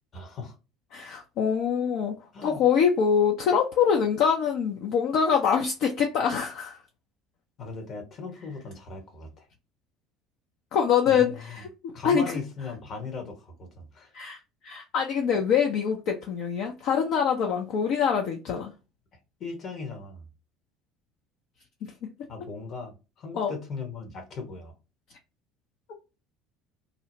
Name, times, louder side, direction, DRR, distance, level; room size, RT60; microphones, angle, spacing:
voice 1, 0.1-0.5 2.3-2.6 7.6-9.5 11.1-11.6 11.9-14.1 19.4-20.3 22.3-24.7, left 4 dB, 45° left, 1.0 m, -38 dB
voice 2, 0.9-2.1 2.4-6.8 10.7-12.3 14.1-14.4 14.6-18.7 23.4-23.5, left 7 dB, 65° left, 0.4 m, -24 dB
2.7 x 2.0 x 2.6 m
hypercardioid pair, 70°, 0 cm